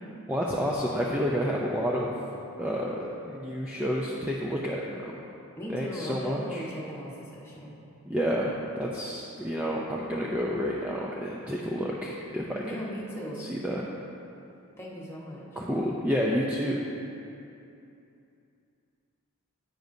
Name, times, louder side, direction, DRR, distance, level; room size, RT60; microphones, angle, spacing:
voice 1, 0.3-2.2 2.6-5.1 5.7-6.7 8.1-12.8 13.4-13.9 15.6-16.8, equal, 5° right, -4 dB, 0.5 m, -30 dB
voice 2, 5.6-7.7 12.6-13.4 14.8-15.5, equal, 10° left, -5 dB, 1.2 m, -38 dB
10.0 x 9.0 x 2.7 m, 2.7 s
head